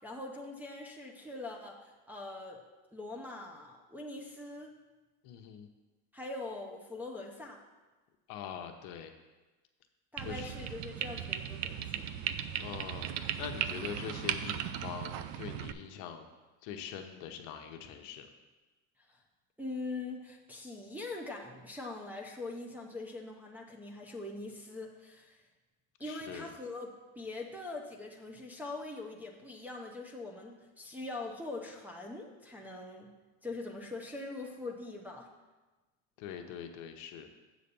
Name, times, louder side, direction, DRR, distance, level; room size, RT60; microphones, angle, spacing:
voice 1, 0.0-2.6 2.9-4.8 6.1-7.6 10.1-12.1 19.1-19.2 19.6-25.4 26.0-33.1 33.4-35.3, left 2 dB, 5° right, -3 dB, 0.6 m, -42 dB
voice 2, 5.2-5.7 8.3-9.1 10.2-10.6 12.6-16.3 16.6-18.3 26.0-26.5 36.2-37.3, left 8 dB, 55° left, 5 dB, 0.9 m, -43 dB
sound 1, 10.2-15.7, right 10 dB, 50° right, 0.5 m, -37 dB
7.8 x 4.1 x 6.8 m, 1.2 s
cardioid pair, 150°, 36 cm